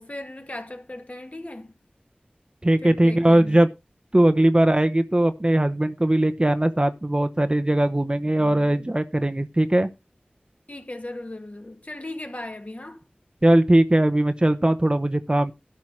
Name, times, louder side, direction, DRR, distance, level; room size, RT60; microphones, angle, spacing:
voice 1, 0.0-1.8 2.8-3.6 10.7-13.0, left 1 dB, 45° left, 2.0 m, -37 dB
voice 2, 2.6-3.7 4.1-9.9 13.4-15.5, right 1 dB, 30° right, 0.9 m, -20 dB
12.0 x 5.7 x 4.8 m
wide cardioid pair, 40°, 3 cm